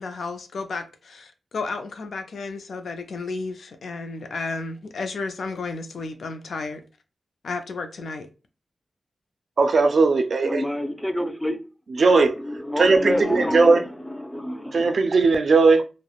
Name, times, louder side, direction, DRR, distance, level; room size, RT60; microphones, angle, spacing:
voice 1, 0.0-6.8 7.4-8.3, left 3 dB, 85° left, 0.3 m, -32 dB
voice 2, 9.6-10.6 12.0-12.3 12.8-13.8 14.7-15.8, right 4 dB, 65° right, 0.3 m, -18 dB
voice 3, 10.4-11.6 11.9-15.1, left 1 dB, 10° left, 0.4 m, -28 dB
2.8 x 2.0 x 2.3 m
wide cardioid pair, 90°, 0 cm